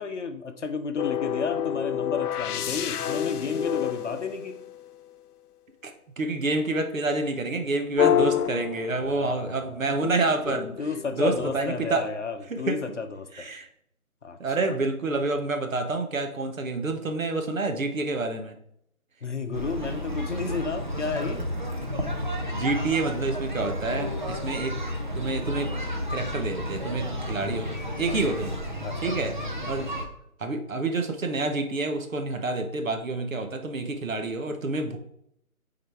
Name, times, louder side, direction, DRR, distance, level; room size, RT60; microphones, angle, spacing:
voice 1, 0.0-4.6 9.0-9.8 10.8-13.5 14.2-14.4 19.2-21.5 28.1-28.2 28.8-29.2 29.6-29.7, left 5 dB, 55° left, 7 dB, 0.7 m, -32 dB
sound 1, 1.0-5.1 8.0-9.5 10.0-11.8, left 10 dB, 90° left, 0.5 m, -28 dB
voice 2, 5.8-10.7 11.1-12.1 12.5-12.8 13.3-13.7 14.4-18.6 22.5-24.8 25.1-25.7 26.1-28.5 29.0-29.4 29.7-29.9 30.4-35.0, right 3 dB, 60° right, 6 dB, 1.1 m, -28 dB
sound 2, 19.5-30.0, equal, 35° right, 0.6 m, -32 dB
9.0 x 4.0 x 3.4 m, 0.74 s
figure-of-eight pair, 165°, 44 cm